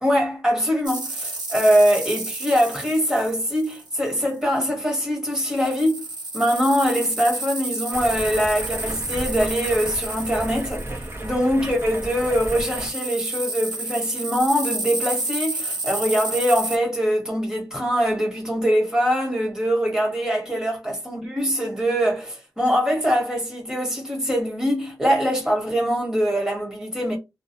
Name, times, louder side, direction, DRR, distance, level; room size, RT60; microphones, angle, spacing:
voice 1, 0.0-6.1 6.3-10.9 11.2-27.2, equal, 10° right, 1.2 m, -23 dB
sound 1, 0.8-4.2 5.3-16.8, right 2 dB, 70° right, 0.8 m, -31 dB
Stream, 7.9-12.9, right 1 dB, 30° right, 0.7 m, -34 dB
2.3 x 2.1 x 2.8 m
wide cardioid pair, 110°, 8 cm